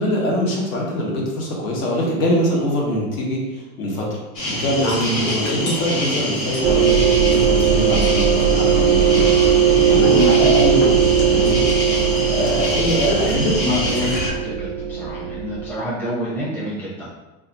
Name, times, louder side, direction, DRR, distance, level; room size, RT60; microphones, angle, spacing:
voice 1, 0.0-4.1 4.4-9.3 9.5-11.6 12.3-13.5, equal, 70° left, -2 dB, 1.3 m, -23 dB
sound 1, 4.4-9.4 10.0-14.3, left 2 dB, 55° left, 0.9 m, -39 dB
sound 2, 4.4-14.3, left 1 dB, 30° left, 1.2 m, -25 dB
sound 3, 6.6-15.8, right 8 dB, 80° right, 0.5 m, -18 dB
voice 2, 13.2-14.2 14.4-17.1, left 1 dB, 5° left, -8 dB, 0.6 m, -27 dB
2.8 x 2.4 x 3.9 m, 1.1 s
supercardioid pair, 150°, 42 cm